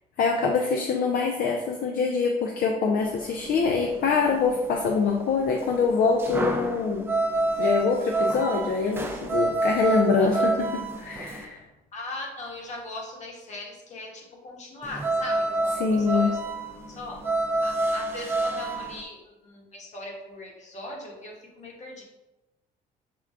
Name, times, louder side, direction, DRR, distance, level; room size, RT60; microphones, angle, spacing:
voice 1, 0.2-7.1 7.6-11.6 15.8-16.3, left 5 dB, 60° left, 1 dB, 0.6 m, -24 dB
sound 1, 3.0-11.4 14.8-19.0, right 2 dB, 15° right, 0.5 m, -28 dB
voice 2, 11.9-16.4 16.9-22.0, left 2 dB, 45° left, -1 dB, 1.3 m, -40 dB
5.9 x 2.3 x 3.5 m, 1.0 s
cardioid pair, 110°, 17 cm